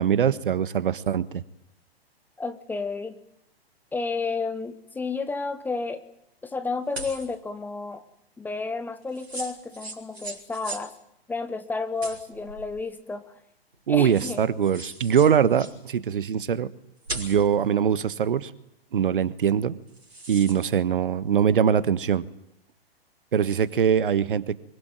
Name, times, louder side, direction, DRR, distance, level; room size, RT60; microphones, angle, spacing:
voice 1, 0.0-1.4 13.9-16.7 17.1-18.5 18.9-19.8 20.3-22.2 23.3-24.6, right 8 dB, 55° right, 17 dB, 1.5 m, -22 dB
voice 2, 2.4-3.2 3.9-6.0 6.4-8.0 8.4-11.0 11.3-13.2 13.9-14.4, left 4 dB, 5° left, 9 dB, 1.1 m, -31 dB
sound 1, 6.9-7.3 9.1-10.9 12.0-12.7 13.7-13.8 14.1-15.8 17.0-17.5 19.9-20.6, right 2 dB, 75° right, 5.8 m, -38 dB
24.5 x 23.0 x 9.2 m, 0.76 s
figure-of-eight pair, 120°, 31 cm